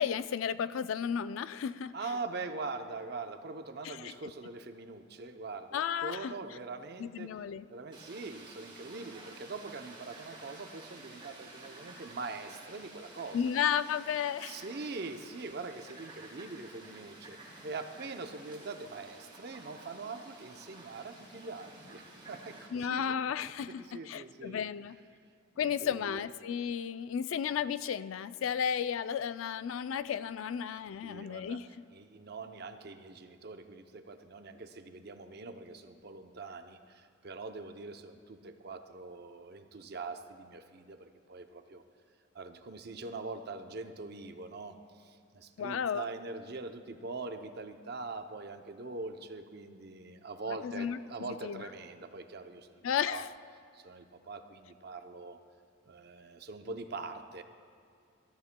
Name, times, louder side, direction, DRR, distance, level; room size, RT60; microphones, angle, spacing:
voice 1, 0.0-1.9 3.8-4.1 5.7-6.3 7.0-7.7 13.3-14.6 22.7-25.0 25.6-31.7 45.6-46.0 50.5-51.6 52.8-53.3, left 8 dB, 75° left, 14 dB, 0.3 m, -33 dB
voice 2, 1.9-7.4 7.7-13.4 14.4-17.4 17.6-23.1 23.7-24.6 25.5-26.3 31.0-31.6 31.9-41.8 42.3-53.3 53.7-55.4 55.9-57.4, right 3 dB, 50° right, 7 dB, 0.6 m, -43 dB
Fowl, 7.9-22.7, right 2 dB, 25° right, 2.7 m, -52 dB
20.5 x 13.5 x 2.2 m, 2.3 s
head